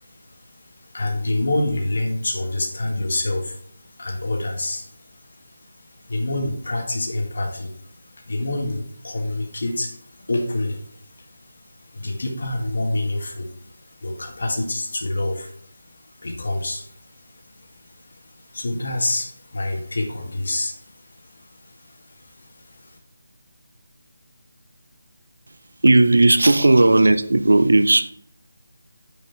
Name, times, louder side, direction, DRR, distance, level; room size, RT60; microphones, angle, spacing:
voice 1, 0.0-23.0, left 2 dB, 60° left, 1.8 m, -28 dB
voice 2, 25.8-28.1, right 2 dB, 75° right, 0.6 m, -15 dB
9.1 x 5.2 x 3.5 m
figure-of-eight pair, 160°, 0 cm